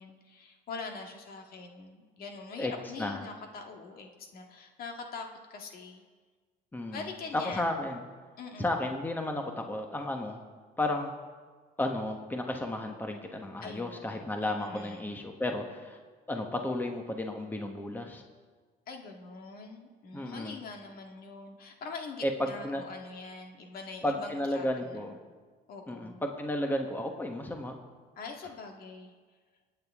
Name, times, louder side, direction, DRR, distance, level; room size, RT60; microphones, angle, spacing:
voice 1, 0.0-6.0 6.9-7.7 8.4-8.8 13.6-15.2 18.9-25.2 25.7-26.2 28.2-29.1, left 4 dB, 60° left, 2 dB, 1.9 m, -43 dB
voice 2, 6.7-7.1 7.3-8.1 8.6-10.4 10.8-11.1 11.8-16.0 16.3-18.2 20.1-20.6 22.2-22.8 24.0-25.2 25.9-27.8, left 1 dB, 10° left, 3 dB, 1.3 m, -33 dB
27.0 x 9.1 x 3.7 m, 1.5 s
cardioid pair, 110°, 17 cm